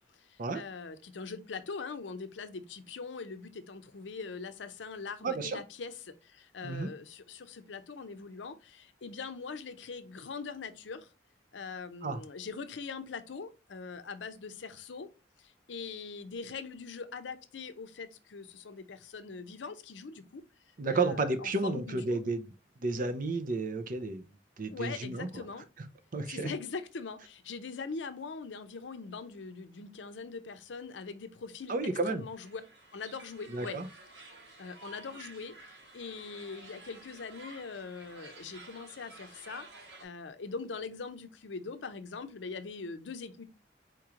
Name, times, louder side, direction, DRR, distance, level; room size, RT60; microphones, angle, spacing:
voice 1, 0.1-11.1 11.5-15.1 15.4-22.2 24.7-25.7 26.3-31.7 32.1-32.6 32.9-33.8 34.6-39.7 40.0-43.4, left 4 dB, 80° left, 0.6 m, -42 dB
voice 2, 5.2-5.6 6.6-6.9 12.0-12.2 20.8-22.4 22.8-24.2 24.6-25.4 25.8-25.9 26.1-26.5 31.7-32.2 33.5-33.9, right 3 dB, 50° right, 0.6 m, -32 dB
sound 1, 32.2-40.1, right 3 dB, 75° right, 1.5 m, -52 dB
4.5 x 3.0 x 3.7 m
head